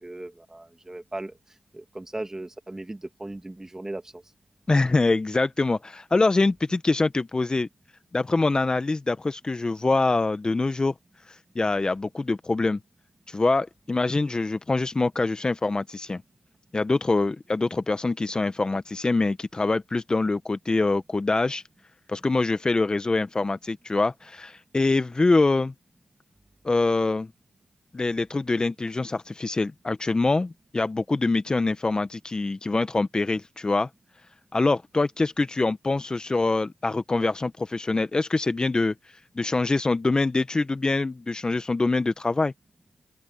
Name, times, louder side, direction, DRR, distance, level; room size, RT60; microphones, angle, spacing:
voice 1, 0.0-1.3 1.7-4.2, right 2 dB, 20° right, 2.4 m, -37 dB
voice 2, 4.7-7.7 8.1-10.9 11.5-12.8 13.3-16.2 16.7-21.6 22.1-25.7 26.6-27.3 27.9-33.9 34.5-38.9 39.4-42.5, left 3 dB, 30° left, 1.1 m, -24 dB
open air
supercardioid pair, 50°, 3 cm